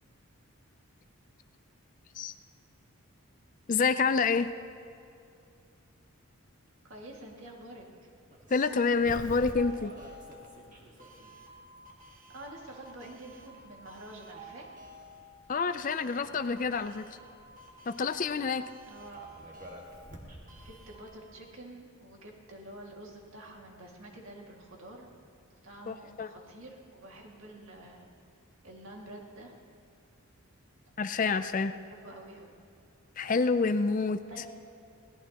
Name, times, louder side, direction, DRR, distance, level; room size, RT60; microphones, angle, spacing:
voice 1, 3.7-4.5 8.5-9.9 15.5-17.0 17.9-18.6 25.9-26.3 31.0-31.8 33.2-34.2, left 4 dB, 35° left, 11 dB, 0.4 m, -28 dB
voice 2, 6.8-7.8 12.1-14.7 18.9-19.2 20.3-25.1 25.6-28.1 28.6-29.5 31.9-32.5 34.2-34.5, right 1 dB, 65° right, 0 dB, 2.1 m, -48 dB
Doorbell, 8.3-21.1, right 1 dB, 35° right, 1.8 m, -49 dB
21.0 x 17.5 x 2.9 m, 2.5 s
head